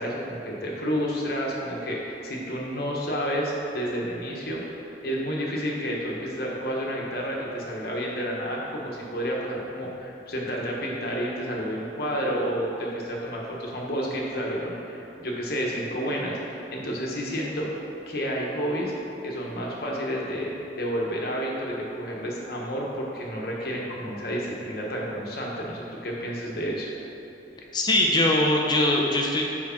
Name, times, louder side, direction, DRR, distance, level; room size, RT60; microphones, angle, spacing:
voice 1, 0.0-17.7 18.1-18.9 19.2-26.9, equal, 60° left, -2 dB, 1.1 m, -30 dB
voice 2, 27.7-29.4, left 1 dB, 25° left, -1 dB, 0.5 m, -21 dB
4.7 x 4.7 x 5.7 m, 2.9 s
head